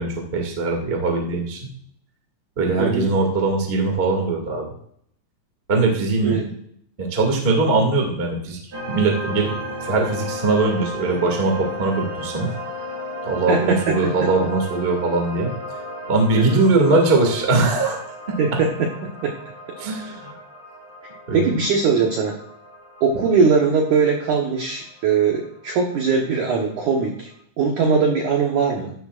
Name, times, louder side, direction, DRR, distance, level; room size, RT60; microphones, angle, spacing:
voice 1, 0.0-1.7 2.6-4.6 5.7-6.3 7.0-8.6 8.9-9.5 9.8-12.5 13.2-15.5 16.1-18.0 19.8-20.3 21.3-21.5, right 3 dB, 35° right, 1 dB, 0.8 m, -21 dB
voice 2, 2.8-3.1 6.2-6.4 13.5-14.3 16.3-16.6 18.4-18.7 19.2-19.3 21.3-22.3 23.0-27.3 27.6-28.9, right 5 dB, 75° right, 0 dB, 1.8 m, -20 dB
sound 1, 8.7-25.7, equal, 20° right, 1.9 m, -35 dB
14.0 x 11.0 x 2.5 m, 0.67 s
omnidirectional pair, 5.3 m